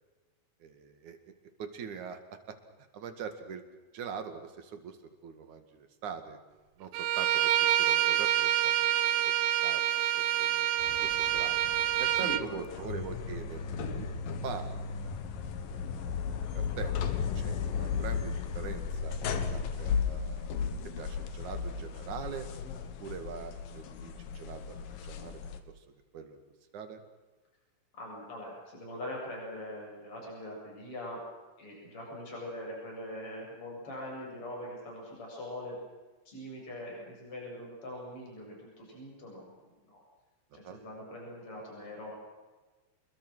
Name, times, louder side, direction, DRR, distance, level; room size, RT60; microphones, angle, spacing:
voice 1, 0.6-1.3 1.6-2.2 2.5-2.6 2.9-3.6 3.9-6.4 6.8-8.9 9.3-9.4 9.6-9.8 10.2-10.7 11.0-11.7 12.0-13.6 14.4-14.7 16.5-16.9 17.4-19.2 19.5-20.6 21.0-22.5 23.0-24.8 25.0-25.4 25.8-25.9 26.1-26.4 26.7-27.0 40.6-40.8, right 6 dB, 55° right, 8 dB, 3.4 m, -42 dB
Bowed string instrument, 6.9-12.4, right 13 dB, 80° right, 2.8 m, -27 dB
sound 1, 10.8-25.6, left 6 dB, 70° left, 3.2 m, -35 dB
voice 2, 12.2-12.8 13.8-14.0 27.9-31.2 31.6-35.8 36.3-40.0 40.5-42.1, left 1 dB, 35° left, -2 dB, 8.4 m, -42 dB
28.5 x 21.5 x 6.3 m, 1.2 s
omnidirectional pair, 4.3 m